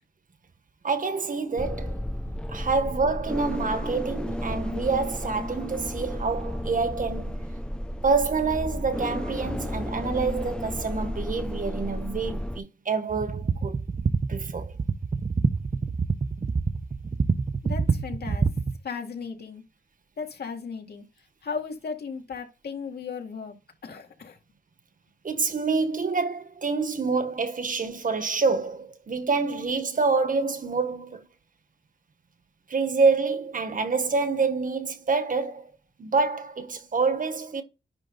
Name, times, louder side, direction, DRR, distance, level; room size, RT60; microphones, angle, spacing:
voice 1, 0.8-2.0 2.5-7.4 8.0-13.8 14.3-14.7 25.2-31.3 32.7-35.7 36.0-37.6, right 4 dB, 50° right, 1.4 m, -27 dB
sound 1, 1.6-12.6, equal, 5° left, 0.5 m, -32 dB
sound 2, 13.1-18.8, right 4 dB, 35° right, 0.8 m, -27 dB
voice 2, 17.6-18.5 18.8-19.6 20.2-21.0 21.4-23.6 23.8-24.4, left 5 dB, 70° left, 2.1 m, -36 dB
10.5 x 3.8 x 3.9 m
wide cardioid pair, 105°, 17 cm